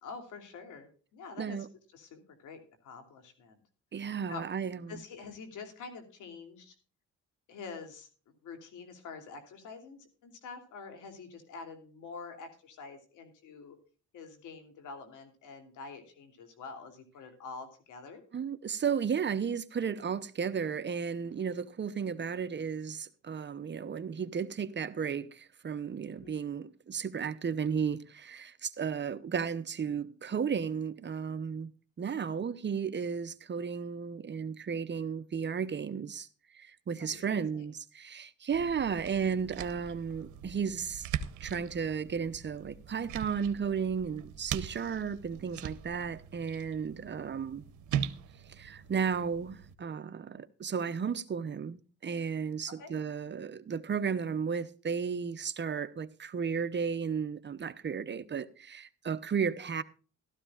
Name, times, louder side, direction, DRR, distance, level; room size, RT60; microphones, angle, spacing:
voice 1, 0.0-1.7 1.9-3.6 4.3-4.5 4.9-6.7 7.5-8.1 8.4-13.8 14.1-18.2 26.1-26.3 37.0-37.6 44.7-44.8 52.7-52.9, left 4 dB, 85° left, 3.0 m, -46 dB
voice 2, 1.4-1.7 3.9-5.0 18.3-31.7 32.0-36.3 36.5-41.1 41.4-47.6 48.5-59.8, right 6 dB, 35° right, 0.9 m, -34 dB
sound 1, 38.5-49.7, right 9 dB, 80° right, 0.9 m, -41 dB
15.5 x 13.0 x 2.4 m
cardioid pair, 90°, 30 cm